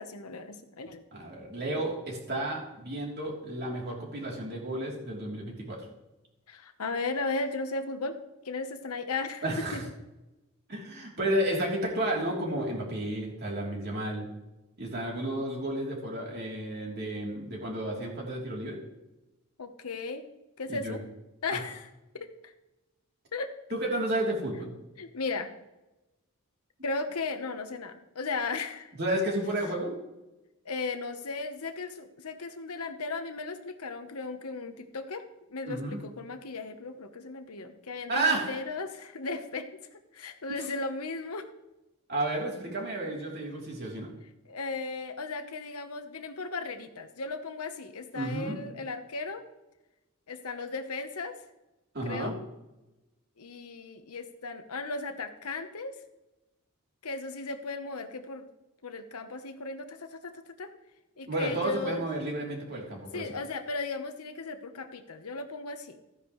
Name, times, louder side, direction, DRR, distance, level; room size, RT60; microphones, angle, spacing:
voice 1, 0.0-1.0 6.5-8.2 8.4-9.4 9.7-9.8 19.6-20.3 20.6-21.0 21.4-21.8 22.1-22.5 23.3-23.5 25.0-25.5 26.8-28.9 30.6-35.2 35.5-39.7 40.1-41.5 44.5-49.4 50.3-51.4 52.0-52.3 53.4-56.0 57.0-58.5 58.8-60.7 61.2-62.0 63.1-66.0, left 3 dB, 85° left, 7 dB, 1.1 m, -36 dB
voice 2, 1.1-5.9 9.4-9.8 10.7-14.3 14.8-18.8 20.7-21.0 21.5-21.6 23.7-24.7 29.0-29.9 35.7-36.0 38.1-38.6 40.5-40.6 42.1-44.1 48.1-48.6 51.9-52.4 61.2-63.2, right 1 dB, 45° right, -2 dB, 3.2 m, -32 dB
14.0 x 10.0 x 3.2 m, 0.99 s
head